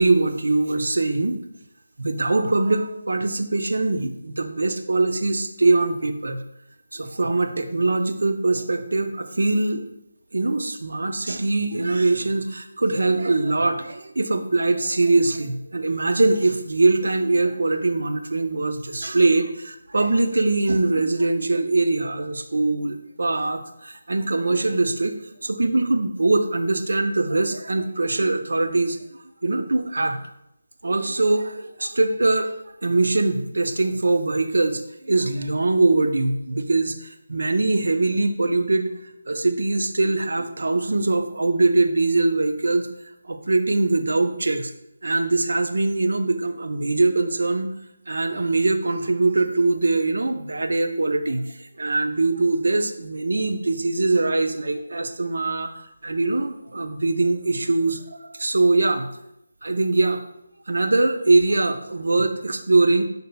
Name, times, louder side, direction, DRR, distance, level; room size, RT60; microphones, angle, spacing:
voice 1, 0.0-1.4 2.0-6.4 6.9-9.8 10.3-25.2 25.4-29.0 29.4-30.2 30.8-32.5 32.8-38.9 39.3-42.9 43.3-44.7 45.0-47.7 48.1-55.7 56.0-59.1 59.6-60.2 60.7-63.0, right 2 dB, 65° right, 7 dB, 0.7 m, -22 dB
10.0 x 5.4 x 2.3 m, 0.82 s
figure-of-eight pair, 155°, 0 cm